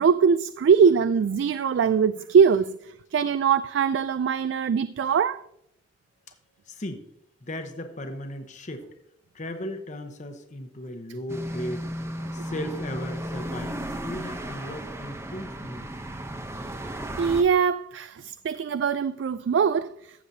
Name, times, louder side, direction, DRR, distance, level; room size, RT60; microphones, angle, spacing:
voice 1, 0.0-2.8 3.1-5.4 17.2-19.9, right 6 dB, 70° right, 0.3 m, -22 dB
voice 2, 6.7-7.0 7.5-8.9 9.3-11.9 12.3-15.9, left 1 dB, 40° left, 1.0 m, -36 dB
sound 1, 11.3-17.4, right 1 dB, 15° right, 0.7 m, -34 dB
14.5 x 7.3 x 2.7 m
head